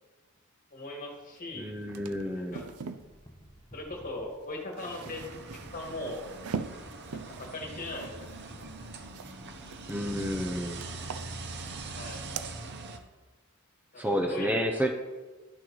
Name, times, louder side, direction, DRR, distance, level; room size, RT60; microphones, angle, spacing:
voice 1, 0.7-1.7 2.3-2.6 3.7-6.2 7.1-8.3 11.9-12.2 13.9-14.9, left 1 dB, 40° left, 1 dB, 1.6 m, -39 dB
sound 1, 1.4-1.5 1.7-3.1 4.4-9.4 9.7-10.4 10.8-11.8 12.0-12.5, right 6 dB, 85° right, 0.5 m, -42 dB
voice 2, 1.5-2.6 9.9-10.8 14.0-14.9, equal, 10° right, 3 dB, 0.5 m, -30 dB
sound 2, 2.8-12.4, equal, 15° left, 1.0 m, -52 dB
sound 3, 4.8-13.0, right 3 dB, 50° right, 0.8 m, -42 dB
11.5 x 6.2 x 3.0 m, 1.3 s
head